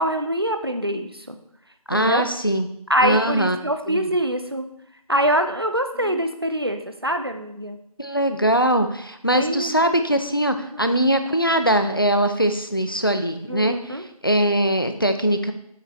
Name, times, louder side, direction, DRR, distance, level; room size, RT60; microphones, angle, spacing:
voice 1, 0.0-1.4 1.9-2.2 2.9-4.7 5.1-7.8 9.3-9.7 13.5-14.0, right 1 dB, 40° right, 7 dB, 0.5 m, -24 dB
voice 2, 1.9-2.7 3.0-3.6 3.9-4.2 6.1-6.2 8.0-15.5, right 1 dB, 35° left, 8 dB, 0.4 m, -21 dB
7.5 x 5.0 x 3.1 m, 0.73 s
figure-of-eight pair, 175°, 20 cm